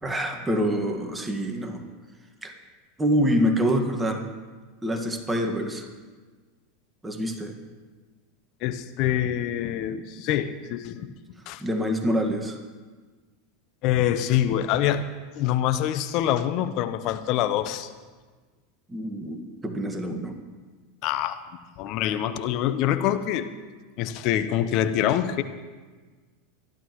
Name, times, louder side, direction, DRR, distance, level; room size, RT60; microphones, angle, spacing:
voice 1, 0.0-1.8 2.4-2.5 3.0-4.3 4.8-5.9 7.0-7.5 11.6-12.6 18.9-20.4, equal, 10° right, 4 dB, 1.7 m, -26 dB
voice 2, 8.6-11.1 11.5-11.6 13.8-15.0 15.3-17.9 21.0-21.4 21.8-23.5 24.0-25.4, left 11 dB, 50° left, 11 dB, 0.9 m, -25 dB
25.0 x 11.5 x 3.1 m, 1.4 s
hypercardioid pair, 90°, 0 cm